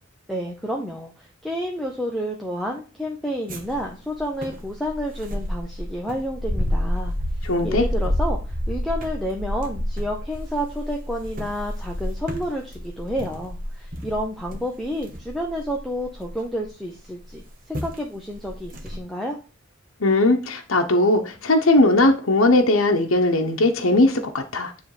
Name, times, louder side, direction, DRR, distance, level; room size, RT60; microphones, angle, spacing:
voice 1, 0.3-7.1 7.6-19.4, equal, ahead, 0.8 m, -30 dB
sound 1, 3.5-16.6 17.3-17.5 17.7-18.0 18.3-19.0, equal, 45° right, 1.2 m, -29 dB
voice 2, 7.4-7.8 20.0-24.7, left 2 dB, 80° left, 1.0 m, -19 dB
9.5 x 3.4 x 4.9 m
head